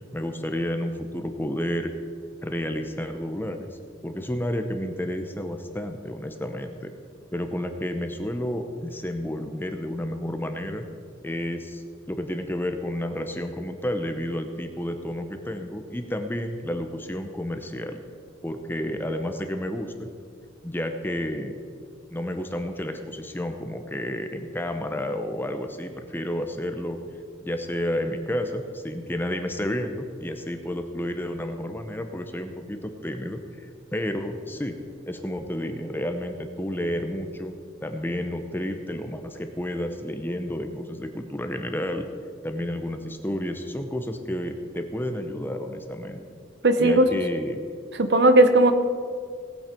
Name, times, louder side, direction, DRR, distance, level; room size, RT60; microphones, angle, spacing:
voice 1, 0.1-1.9 2.4-3.8 4.0-6.9 7.3-10.8 11.2-18.0 18.4-20.1 20.6-21.6 22.1-27.0 27.4-34.8 35.1-37.5 37.8-42.0 42.4-46.2 46.8-47.6, left 1 dB, 10° left, 6 dB, 0.8 m, -31 dB
voice 2, 46.6-47.0 48.0-48.7, right 1 dB, 60° right, 9 dB, 0.9 m, -16 dB
18.0 x 8.9 x 4.5 m, 2.2 s
head